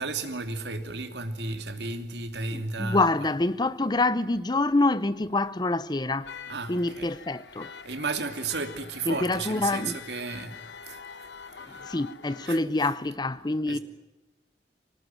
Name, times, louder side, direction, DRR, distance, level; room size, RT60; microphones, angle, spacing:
voice 1, 0.0-3.0 6.5-7.1 7.8-10.6 10.9-11.3 11.7-11.8 12.4-12.9 13.7-13.8, right 3 dB, 75° right, 2.9 m, -33 dB
voice 2, 2.5-6.4 6.7-7.7 9.1-10.0 11.6-13.8, left 2 dB, 25° left, 0.8 m, -26 dB
sound 1, 6.2-12.6, left 6 dB, 85° left, 1.3 m, -45 dB
25.5 x 18.5 x 9.1 m
head